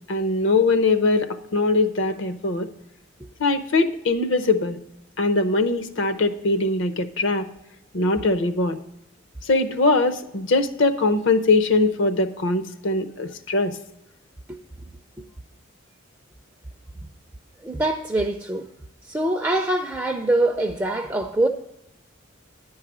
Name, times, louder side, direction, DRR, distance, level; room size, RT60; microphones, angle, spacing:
voice 1, 0.1-2.7 3.4-4.8 5.2-7.5 7.9-8.8 9.5-13.7, left 3 dB, 65° left, 9 dB, 0.7 m, -21 dB
voice 2, 17.6-18.7 19.1-21.5, right 2 dB, 10° right, 3 dB, 0.4 m, -23 dB
10.5 x 4.8 x 6.0 m, 0.85 s
head